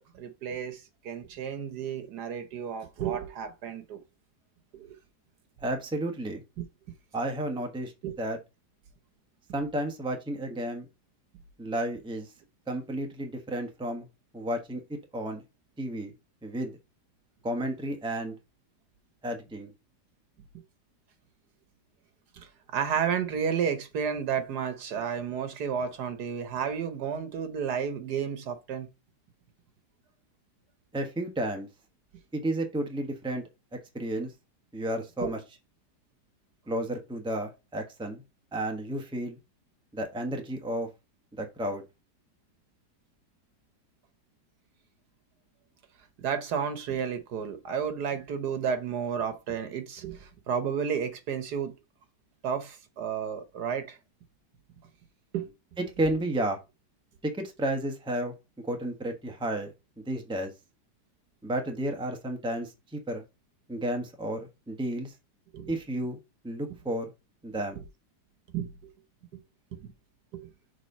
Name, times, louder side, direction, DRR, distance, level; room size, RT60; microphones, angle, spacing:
voice 1, 0.0-4.0 4.7-4.9 8.0-8.1 22.4-28.9 35.2-35.3 46.2-51.7 52.4-54.0 55.3-55.5 65.5-65.7 68.5-68.7 69.3-69.4 69.7-69.9 70.3-70.5, right 7 dB, 70° right, 1.5 m, -32 dB
voice 2, 5.6-6.4 7.1-8.4 9.5-10.9 11.6-12.3 12.7-14.1 14.3-15.4 15.8-16.1 16.4-16.7 17.4-18.4 19.2-19.7 30.9-31.7 32.3-33.4 33.9-34.3 34.7-35.4 36.7-38.2 38.5-39.4 39.9-40.9 41.3-41.8 55.8-56.6 57.2-58.3 58.6-60.5 61.4-63.2 63.7-65.1 65.7-66.2 66.4-67.0 67.4-67.8, right 1 dB, 5° right, 0.9 m, -32 dB
6.5 x 3.7 x 5.3 m
omnidirectional pair, 1.9 m